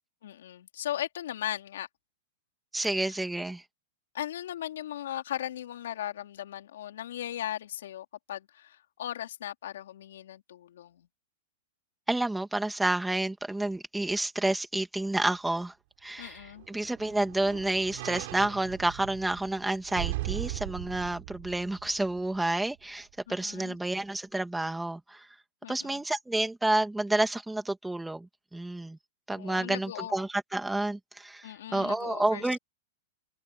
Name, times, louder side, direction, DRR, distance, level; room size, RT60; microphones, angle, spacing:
voice 1, 0.2-1.9 3.0-3.1 4.1-11.1 16.2-16.7 23.3-23.8 25.6-26.0 29.4-30.2 31.4-32.5, left 11 dB, 75° left, 4.0 m, -38 dB
voice 2, 2.7-3.6 12.1-15.7 16.0-25.3 25.7-29.0 29.3-32.6, right 2 dB, 5° right, 2.3 m, -30 dB
sound 1, 16.2-22.6 23.0-23.1, right 20 dB, 55° right, 6.8 m, -39 dB
hypercardioid pair, 140°, 0 cm